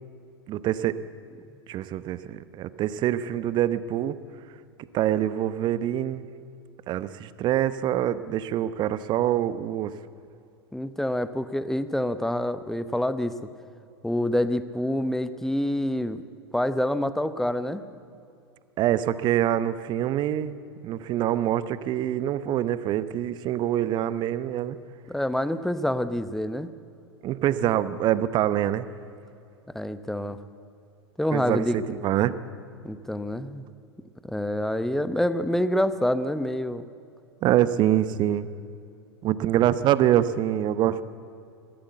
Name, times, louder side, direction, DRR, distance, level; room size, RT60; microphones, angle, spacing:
voice 1, 0.5-1.0 1.7-4.2 4.9-6.2 6.9-9.9 18.8-20.6 20.8-24.8 27.2-28.9 31.3-32.3 37.4-38.5 39.2-41.0, right 12 dB, 35° right, 15 dB, 0.9 m, -25 dB
voice 2, 10.7-13.4 14.0-16.2 16.5-17.8 25.1-26.7 29.7-30.4 31.2-31.8 32.8-33.6 34.2-36.9, left 1 dB, 5° left, 13 dB, 0.9 m, -27 dB
21.5 x 15.5 x 8.1 m, 2.5 s
figure-of-eight pair, 90°, 14 cm